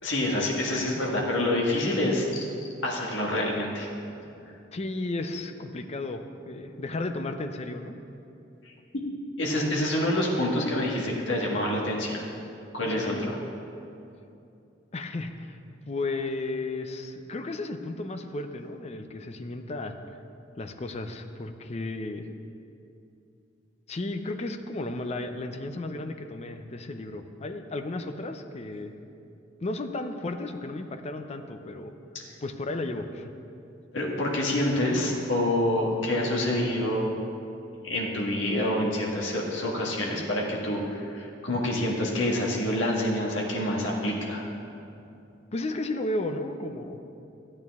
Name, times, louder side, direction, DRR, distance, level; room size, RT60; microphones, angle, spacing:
voice 1, 0.0-2.4 2.8-3.9 9.4-12.2 12.7-13.4 32.1-32.2 33.9-37.1 37.8-44.4, left 1 dB, 85° left, -2 dB, 1.7 m, -27 dB
voice 2, 4.7-7.9 12.9-13.3 14.9-15.6 15.9-19.9 20.6-22.3 23.9-29.0 29.6-31.9 32.4-33.3 45.5-47.1, left 2 dB, 35° left, 7 dB, 0.6 m, -34 dB
13.0 x 8.8 x 3.6 m, 2.7 s
head